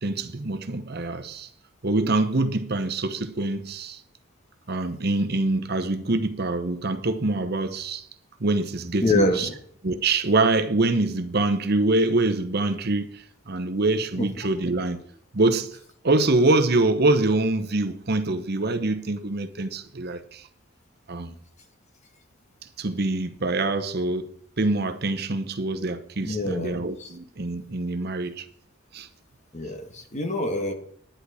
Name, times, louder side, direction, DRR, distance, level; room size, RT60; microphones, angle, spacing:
voice 1, 0.0-1.5 1.8-4.0 4.7-8.0 8.4-9.5 9.8-15.0 15.3-15.8 16.0-20.5 21.1-21.4 22.8-28.5 28.9-29.1, right 2 dB, 50° right, 0.9 m, -25 dB
voice 2, 9.0-9.5 26.2-27.1 29.5-30.7, left 2 dB, 35° left, 1.5 m, -26 dB
10.5 x 10.0 x 4.9 m
head